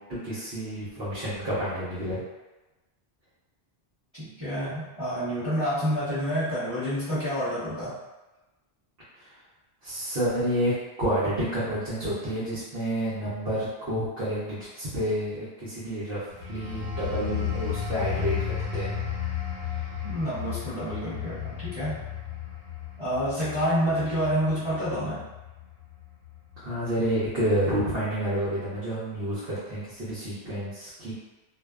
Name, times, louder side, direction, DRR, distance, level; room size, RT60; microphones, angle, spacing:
voice 1, 0.1-2.2 9.8-19.0 26.6-31.1, equal, 65° right, -12 dB, 1.0 m, -29 dB
voice 2, 4.1-7.9 20.0-22.0 23.0-25.3, equal, 25° right, -17 dB, 1.1 m, -28 dB
sound 1, 16.3-26.7 27.1-27.4, left 8 dB, 60° left, 0.8 m, -34 dB
2.5 x 2.2 x 2.3 m, 1.1 s
omnidirectional pair, 1.1 m